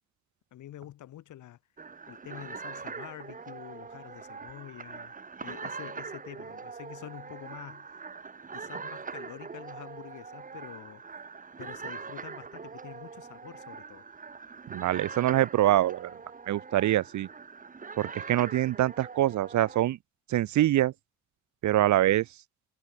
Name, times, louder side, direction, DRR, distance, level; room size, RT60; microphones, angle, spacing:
voice 1, 0.5-1.6 2.1-5.1 5.4-7.9 8.5-11.0 11.6-14.1, left 13 dB, 75° left, 3.3 m, -47 dB
sound 1, 1.8-19.8, right 5 dB, 25° right, 1.4 m, -42 dB
voice 2, 14.7-16.1 16.5-17.3 18.0-20.0 20.3-20.9 21.6-22.3, right 13 dB, 70° right, 1.0 m, -24 dB
cardioid pair, 90°, 30 cm